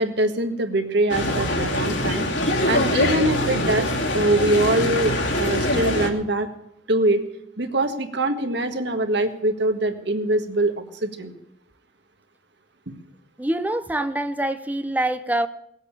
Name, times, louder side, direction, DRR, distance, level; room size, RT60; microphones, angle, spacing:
voice 1, 0.0-6.5 6.9-7.2 7.6-11.3 12.9-13.0, right 1 dB, 60° right, 7 dB, 1.7 m, -23 dB
sound 1, 1.1-6.1, left 1 dB, 65° left, 2.6 m, -23 dB
voice 2, 13.4-15.5, right 1 dB, 10° right, 12 dB, 0.6 m, -25 dB
19.0 x 8.2 x 8.4 m, 0.76 s
head